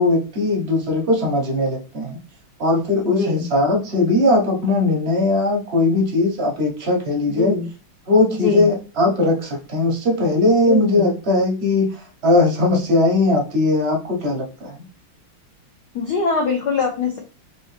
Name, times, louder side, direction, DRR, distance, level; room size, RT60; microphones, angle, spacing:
voice 1, 0.0-2.2 2.6-7.5 8.1-14.8, left 2 dB, 55° right, -1 dB, 0.7 m, -19 dB
voice 2, 3.0-3.5 7.3-7.7 8.3-8.7 10.7-11.1 15.9-17.2, left 4 dB, 70° left, 2 dB, 1.0 m, -23 dB
4.1 x 2.9 x 3.2 m, 0.34 s
omnidirectional pair, 2.4 m